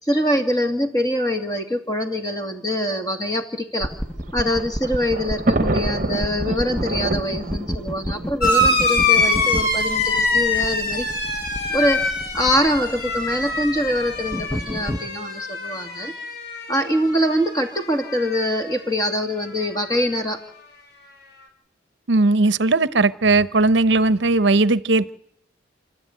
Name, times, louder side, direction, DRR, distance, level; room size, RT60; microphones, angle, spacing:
voice 1, 0.0-3.9 4.3-11.1 11.7-12.1 12.3-16.1 16.7-20.4, equal, 20° left, 2.3 m, -24 dB
sound 1, 3.8-15.0, equal, ahead, 1.0 m, -31 dB
Thunder, 4.0-9.3 10.2-10.3 10.5-10.6 11.7-12.0, right 2 dB, 40° right, 1.1 m, -27 dB
sound 2, 8.4-17.4 17.7-18.5 19.6-19.7, left 2 dB, 55° left, 4.1 m, -24 dB
voice 2, 22.1-25.1, right 3 dB, 65° right, 0.8 m, -18 dB
29.5 x 13.0 x 9.5 m
head